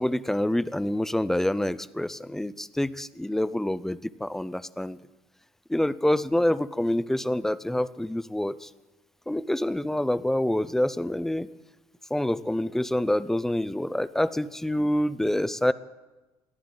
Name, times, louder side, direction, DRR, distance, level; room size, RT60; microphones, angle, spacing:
voice 1, 0.0-5.0 5.7-8.7 9.3-11.5 12.1-15.7, left 1 dB, 5° left, 15 dB, 0.4 m, -26 dB
21.5 x 15.5 x 3.9 m, 1.1 s
cardioid pair, 140°, 10 cm